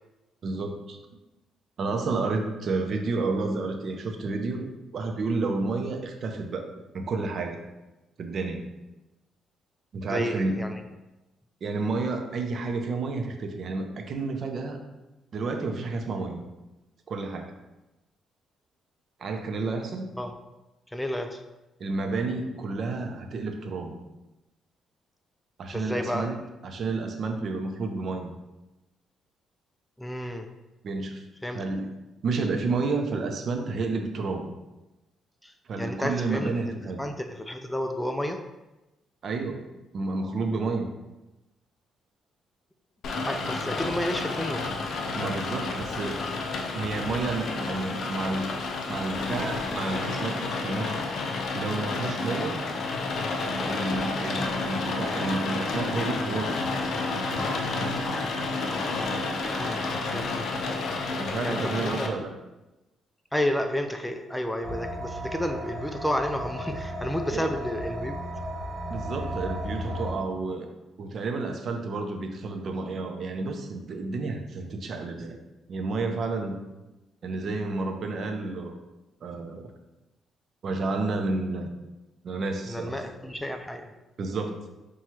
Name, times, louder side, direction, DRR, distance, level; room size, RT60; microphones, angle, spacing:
voice 1, 0.4-1.0 1.8-4.7 4.9-7.6 8.2-8.6 9.9-10.6 11.6-14.8 15.3-16.5 17.1-17.5 19.2-20.1 21.8-24.0 25.6-26.4 26.6-28.3 30.8-31.2 31.5-31.9 32.2-34.5 35.7-37.0 39.2-39.6 39.9-40.9 45.2-46.2 46.7-48.5 48.9-51.1 51.5-52.6 53.7-56.6 59.5-60.0 61.1-62.3 67.3-67.5 68.9-70.7 71.0-75.4 75.7-76.6 77.2-78.7 79.2-79.7 80.6-81.7 82.2-83.1 84.2-84.6, right 3 dB, 55° right, 4 dB, 0.5 m, -30 dB
voice 2, 10.0-10.7 20.2-20.3 20.9-21.4 25.7-26.3 30.0-30.5 31.4-31.6 35.4-36.6 37.0-38.4 43.2-44.6 59.6-60.9 61.4-62.1 63.3-68.1 82.7-83.9, left 1 dB, 5° left, 5 dB, 0.4 m, -31 dB
Rain, 43.0-62.1, left 3 dB, 65° left, 0.5 m, -30 dB
sound 1, 64.6-70.1, equal, 35° right, 0.9 m, -35 dB
5.6 x 2.3 x 3.1 m, 1.0 s
cardioid pair, 90°, 0 cm